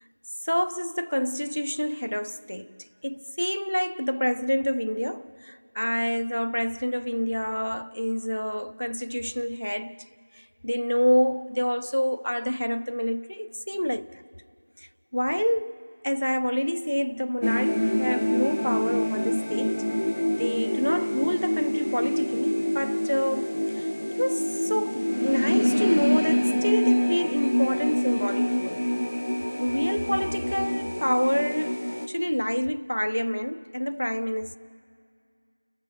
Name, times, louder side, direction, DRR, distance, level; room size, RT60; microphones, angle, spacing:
voice 1, 0.4-2.8 3.0-10.0 10.3-14.2 14.8-15.8 16.0-19.8 20.4-28.9 29.6-34.6, equal, 85° left, 0.8 m, -27 dB
sound 1, 17.4-32.1, equal, 35° left, 0.9 m, -26 dB
29.0 x 20.5 x 6.6 m
figure-of-eight pair, 180°, 0 cm